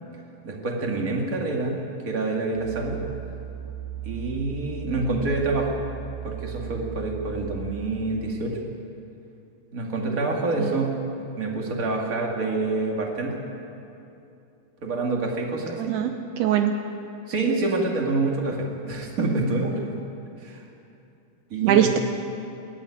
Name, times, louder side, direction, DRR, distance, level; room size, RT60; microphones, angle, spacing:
voice 1, 0.4-1.8 2.0-3.0 4.0-5.8 6.2-8.6 9.7-10.9 11.4-13.4 14.8-15.9 17.3-19.9 20.4-20.6 21.5-21.9, right 3 dB, 65° right, 0 dB, 0.8 m, -27 dB
sound 1, 2.5-7.8, right 10 dB, 25° right, 2.9 m, -36 dB
voice 2, 15.8-16.8 21.6-22.0, right 10 dB, 85° right, 6 dB, 2.2 m, -22 dB
21.5 x 14.5 x 9.9 m, 2.7 s
omnidirectional pair, 5.6 m